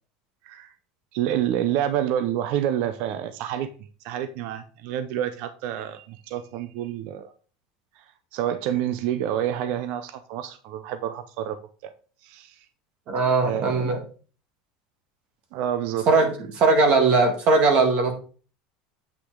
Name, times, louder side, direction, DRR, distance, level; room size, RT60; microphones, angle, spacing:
voice 1, 1.1-3.7 4.0-7.3 8.0-8.1 8.3-11.6 11.8-11.9 12.2-12.6 13.2-14.0 15.5-16.1, right 10 dB, 50° right, 0.6 m, -28 dB
voice 2, 13.1-14.0 16.1-18.1, right 3 dB, 35° right, 1.7 m, -19 dB
8.3 x 5.8 x 3.8 m
cardioid pair, 165°, 3 cm